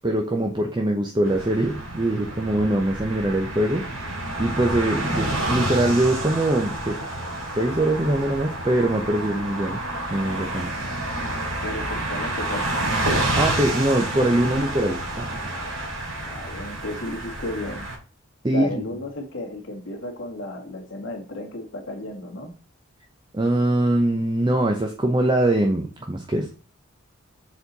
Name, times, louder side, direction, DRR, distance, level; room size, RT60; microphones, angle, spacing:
voice 1, 0.0-7.0 7.5-9.8 10.1-10.7 13.4-15.6 18.4-18.8 23.3-26.6, right 1 dB, 20° right, 0.7 m, -23 dB
sound 1, 1.2-18.0, right 1 dB, 80° right, 3.9 m, -29 dB
voice 2, 11.6-12.7 16.1-17.9 18.5-22.5, left 1 dB, 60° left, 1.8 m, -33 dB
7.1 x 4.3 x 4.0 m
head